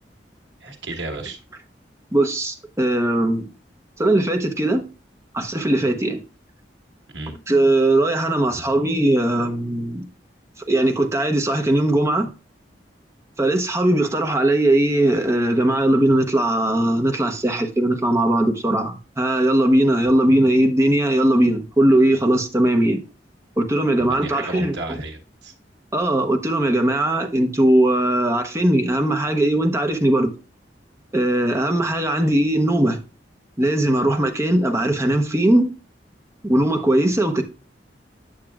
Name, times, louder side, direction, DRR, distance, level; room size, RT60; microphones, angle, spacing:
voice 1, 0.6-1.4 7.1-7.3 24.0-25.5, right 2 dB, 85° right, 1.4 m, -33 dB
voice 2, 2.1-3.5 4.0-4.8 5.3-6.2 7.5-10.1 10.7-12.3 13.4-23.0 23.6-25.0 25.9-30.3 31.1-33.0 33.6-35.7 36.4-37.4, right 1 dB, 15° right, 0.9 m, -19 dB
8.8 x 6.4 x 2.4 m
head